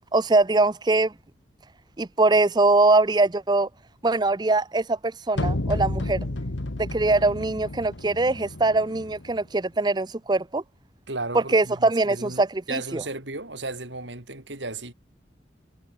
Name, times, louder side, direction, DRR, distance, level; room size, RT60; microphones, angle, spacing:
voice 1, 0.1-1.1 2.0-3.7 4.0-6.2 6.8-10.6 11.3-13.0, right 2 dB, 25° right, 0.6 m, -22 dB
sound 1, 5.4-9.4, left 1 dB, 90° left, 1.6 m, -31 dB
voice 2, 11.1-14.9, right 2 dB, 80° right, 5.9 m, -35 dB
head